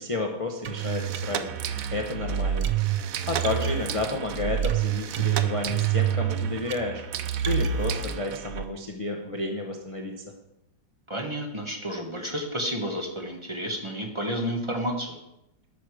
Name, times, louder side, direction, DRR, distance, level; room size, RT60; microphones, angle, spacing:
voice 1, 0.0-1.5 1.9-2.7 3.3-7.0 7.4-10.3, left 2 dB, 40° left, 2 dB, 0.4 m, -31 dB
sound 1, 0.6-8.6, right 9 dB, 70° right, 0.8 m, -28 dB
voice 2, 11.1-15.2, equal, 15° right, 1 dB, 1.2 m, -31 dB
13.0 x 6.5 x 4.9 m, 0.87 s
omnidirectional pair, 2.1 m